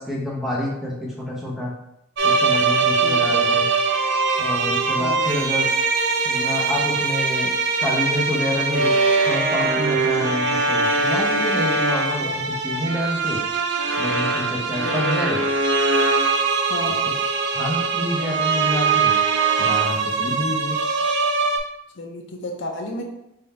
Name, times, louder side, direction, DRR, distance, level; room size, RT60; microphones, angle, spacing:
voice 1, 0.0-1.7 2.2-3.7 4.4-5.7 6.2-7.5 7.8-8.9 9.3-13.4 14.0-15.4 17.5-19.1 19.6-20.8, left 1 dB, ahead, -4 dB, 0.8 m, -27 dB
sound 1, 2.2-21.6, right 4 dB, 55° right, 0.5 m, -21 dB
voice 2, 3.0-3.4 5.0-5.3 12.2-12.3 14.8-15.1 16.7-17.0 22.0-23.0, left 1 dB, 60° left, 1 dB, 0.6 m, -32 dB
3.6 x 2.6 x 4.3 m, 0.84 s
head